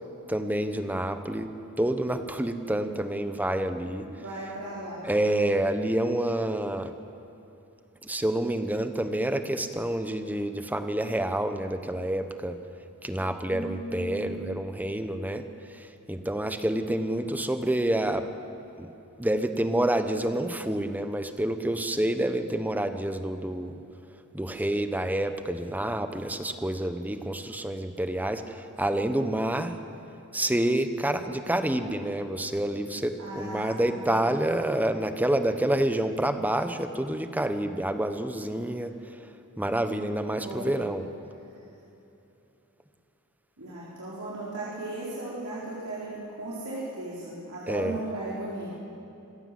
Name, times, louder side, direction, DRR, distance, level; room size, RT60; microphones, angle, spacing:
voice 1, 0.3-1.5 1.8-4.1 5.0-6.9 8.0-12.6 13.0-18.3 18.8-18.9 19.2-23.8 24.3-29.8 30.3-38.9 39.6-41.1 47.7-48.0, right 1 dB, 10° right, 8 dB, 1.0 m, -28 dB
voice 2, 4.1-5.1 13.5-14.5 33.2-34.0 40.4-40.9 43.6-48.7, right 2 dB, 75° right, -7 dB, 4.4 m, -36 dB
26.0 x 16.0 x 7.8 m, 2.9 s
head